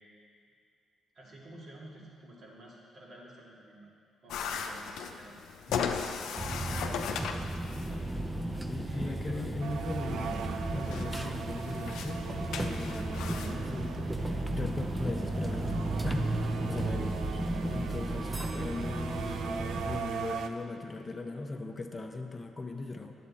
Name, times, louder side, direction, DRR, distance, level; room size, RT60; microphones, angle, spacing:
voice 1, 1.1-3.9 4.2-5.4 6.2-8.0 8.8-9.6, right 1 dB, 55° right, -4 dB, 2.1 m, -51 dB
sound 1, 4.3-13.5, left 6 dB, 80° left, 0.5 m, -38 dB
voice 2, 5.7-6.0 8.7-10.5 10.7-17.1 17.7-23.1, left 2 dB, 25° left, 4 dB, 0.8 m, -39 dB
sound 2, 6.4-20.0, right 1 dB, 15° right, 0.6 m, -34 dB
sound 3, 9.6-20.5, right 6 dB, 80° right, 0.5 m, -40 dB
10.0 x 7.5 x 4.2 m, 2.4 s
cardioid pair, 90°, 0 cm